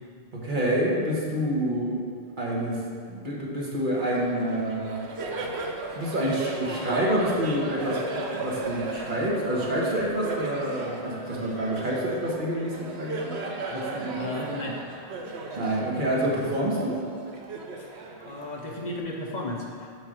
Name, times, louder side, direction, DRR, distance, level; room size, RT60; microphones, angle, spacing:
voice 1, 0.3-2.0 2.4-2.8 3.1-5.0 6.0-13.4 13.7-14.3 15.5-17.0, right 1 dB, 50° right, -4 dB, 1.6 m, -27 dB
Laughter, 4.0-19.0, right 3 dB, 85° right, 1.1 m, -36 dB
voice 2, 14.2-14.8 17.8-17.9 18.3-19.9, left 1 dB, 45° left, -1 dB, 0.9 m, -34 dB
7.7 x 4.6 x 6.4 m, 2.2 s
omnidirectional pair, 1.1 m